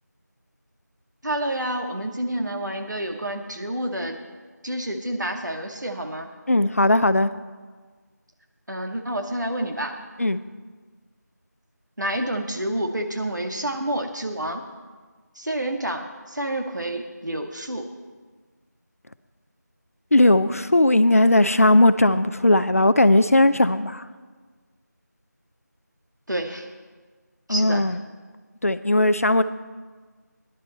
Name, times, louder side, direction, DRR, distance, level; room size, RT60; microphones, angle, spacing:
voice 1, 1.2-4.2 4.6-6.3 8.7-10.0 12.0-14.6 15.4-17.9 26.3-26.7 27.5-27.8, right 1 dB, 80° right, 4 dB, 1.8 m, -28 dB
voice 2, 6.5-7.3 10.2-10.4 20.1-24.0 27.5-28.0 28.6-29.4, left 1 dB, 50° left, 13 dB, 0.5 m, -18 dB
15.5 x 11.0 x 4.3 m, 1.5 s
figure-of-eight pair, 170°, 10 cm